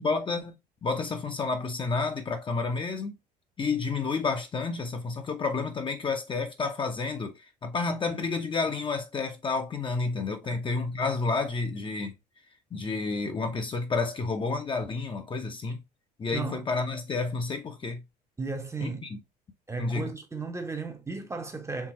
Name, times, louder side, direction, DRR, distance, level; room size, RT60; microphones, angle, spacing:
voice 1, 0.0-3.2 3.6-12.1 12.7-15.8 16.2-18.0 18.8-19.2 19.8-20.1, left 4 dB, 25° left, 0.8 m, -30 dB
voice 2, 16.3-16.7 18.4-19.1 19.7-21.9, right 4 dB, 15° right, 0.8 m, -35 dB
4.6 x 3.4 x 2.9 m
figure-of-eight pair, 60°, 21 cm